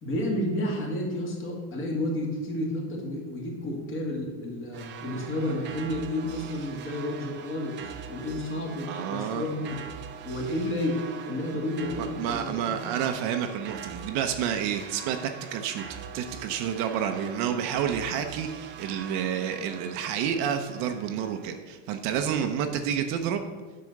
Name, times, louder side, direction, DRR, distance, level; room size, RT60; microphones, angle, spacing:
voice 1, 0.0-9.8 10.2-13.0 22.2-22.4, left 1 dB, 30° left, -1 dB, 2.0 m, -31 dB
sound 1, 4.7-21.6, right 8 dB, 30° right, 0.6 m, -43 dB
voice 2, 8.8-9.4 12.0-23.4, right 8 dB, 55° right, 6 dB, 0.8 m, -29 dB
9.5 x 4.4 x 6.5 m, 1.3 s
cardioid pair, 160°, 41 cm